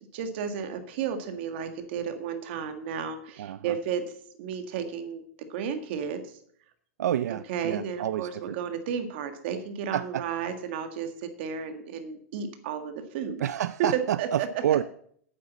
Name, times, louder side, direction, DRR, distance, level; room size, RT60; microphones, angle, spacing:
voice 1, 0.1-4.0 4.4-5.2 5.5-6.4 7.3-13.4 13.9-14.8, right 7 dB, 40° right, 8 dB, 1.6 m, -33 dB
voice 2, 3.4-3.8 7.0-8.6 9.9-10.2 13.4-14.8, right 11 dB, 85° right, 15 dB, 0.5 m, -29 dB
8.8 x 8.2 x 7.3 m, 0.64 s
supercardioid pair, 175°, 9 cm